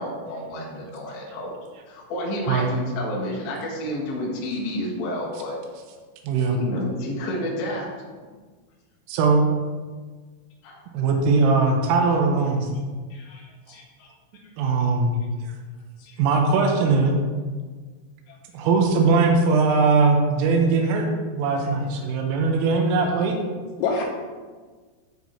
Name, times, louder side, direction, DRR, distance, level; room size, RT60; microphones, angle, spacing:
voice 1, 0.0-1.5 1.9-5.6 6.5-7.9 10.6-10.8, left 1 dB, 65° left, -4 dB, 3.5 m, -30 dB
voice 2, 6.3-6.6 9.1-9.4 10.9-12.7 14.6-15.1 16.2-17.2 18.5-21.1 21.3-23.4, right 4 dB, 85° right, 2 dB, 3.5 m, -20 dB
voice 3, 13.1-14.1 16.0-16.2 18.3-18.4 23.8-24.0, left 4 dB, 85° left, -1 dB, 2.4 m, -30 dB
12.0 x 4.6 x 2.8 m, 1.4 s
omnidirectional pair, 5.8 m